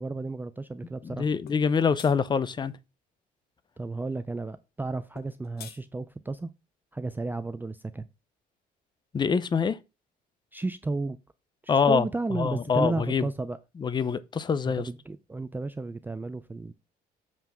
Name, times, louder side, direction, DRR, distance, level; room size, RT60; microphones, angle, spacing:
voice 1, 0.0-1.3 3.8-6.5 6.9-8.1 10.5-11.2 11.6-13.6 14.7-16.7, right 3 dB, 10° right, 0.4 m, -33 dB
voice 2, 1.0-2.7 9.1-9.8 11.7-12.1 12.3-13.2 13.8-14.8, left 6 dB, 25° left, 0.6 m, -25 dB
sound 1, 1.5-1.6 2.0-2.1 5.1-5.8, left 9 dB, 65° left, 0.9 m, -45 dB
7.5 x 3.4 x 6.1 m
cardioid pair, 110°, 17 cm